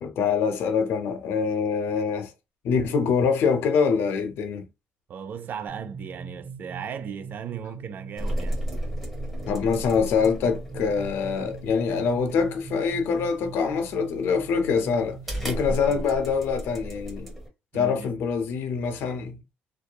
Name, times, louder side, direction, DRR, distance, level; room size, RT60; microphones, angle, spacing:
voice 1, 0.0-2.3 2.6-4.7 9.5-15.2 15.4-17.3 17.7-19.4, left 5 dB, 70° left, 0.5 m, -24 dB
voice 2, 5.1-8.7 15.7-16.0 17.7-18.1, right 7 dB, 50° right, 0.4 m, -37 dB
sound 1, 5.7-15.5, right 5 dB, 25° right, 1.1 m, -42 dB
sound 2, 8.2-17.5, equal, ahead, 1.1 m, -35 dB
2.7 x 2.3 x 2.3 m
cardioid pair, 120°, 4 cm